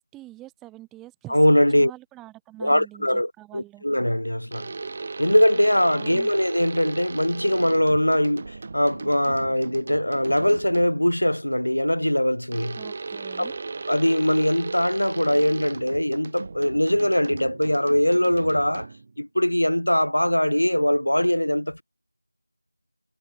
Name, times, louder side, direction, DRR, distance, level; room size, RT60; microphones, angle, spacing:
voice 1, 0.1-3.8 5.9-6.3 12.8-13.6, right 16 dB, 5° right, 0.3 m, -45 dB
voice 2, 1.3-1.9 2.6-4.7 5.2-12.8 13.4-13.5 13.9-18.9 19.2-21.8, equal, 80° left, 0.6 m, -21 dB
sound 1, 4.5-11.1 12.5-19.2, right 3 dB, 20° right, 1.1 m, -36 dB
figure-of-eight pair, 175°, 0 cm